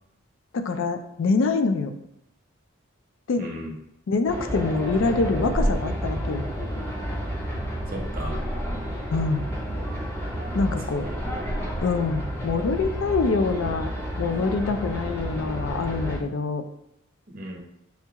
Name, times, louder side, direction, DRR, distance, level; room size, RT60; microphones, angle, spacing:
voice 1, 0.5-1.9 3.3-3.5 4.1-6.5 9.1-9.5 10.5-11.1 11.8-13.9 14.2-16.6, left 4 dB, 65° left, 8 dB, 0.4 m, -25 dB
voice 2, 3.4-3.8 7.9-8.4 10.6-11.5 17.3-17.6, right 1 dB, 45° right, 1 dB, 0.7 m, -37 dB
sound 1, 4.3-16.2, equal, 10° left, 0.6 m, -30 dB
5.6 x 2.3 x 2.8 m, 0.80 s
head